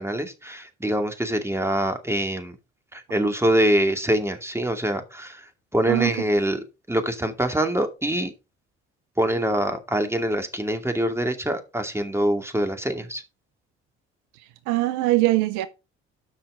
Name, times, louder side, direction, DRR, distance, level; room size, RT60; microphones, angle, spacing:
voice 1, 0.0-2.6 2.9-5.4 5.7-6.6 6.9-8.3 9.2-13.2, right 1 dB, 10° right, 2.3 m, -24 dB
voice 2, 14.7-15.7, right 18 dB, 65° right, 0.7 m, -21 dB
13.0 x 5.8 x 3.8 m
figure-of-eight pair, 45°, 33 cm